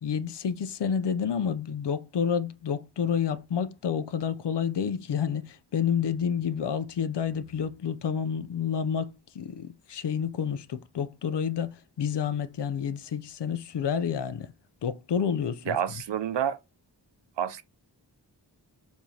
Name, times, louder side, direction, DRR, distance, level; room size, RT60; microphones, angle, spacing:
voice 1, 0.0-14.5 14.8-15.8, left 7 dB, 75° left, 0.5 m, -29 dB
voice 2, 15.7-16.6 17.4-17.6, right 9 dB, 85° right, 0.5 m, -28 dB
4.6 x 2.7 x 2.7 m
wide cardioid pair, 60°, 42 cm